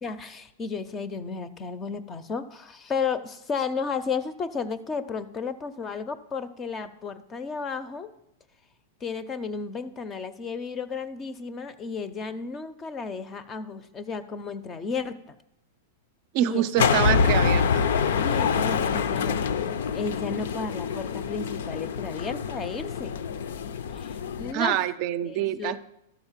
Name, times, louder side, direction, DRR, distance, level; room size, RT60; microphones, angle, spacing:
voice 1, 0.0-8.1 9.0-15.2 16.4-17.2 18.2-19.4 19.9-23.2 23.9-24.8 25.3-25.7, left 5 dB, 20° left, 14 dB, 0.5 m, -33 dB
voice 2, 16.3-17.9 24.5-25.8, right 12 dB, 45° right, 14 dB, 0.4 m, -26 dB
sound 1, 16.8-24.5, left 6 dB, 80° left, 0.6 m, -26 dB
12.5 x 4.3 x 7.3 m, 0.82 s
supercardioid pair, 150°, 0 cm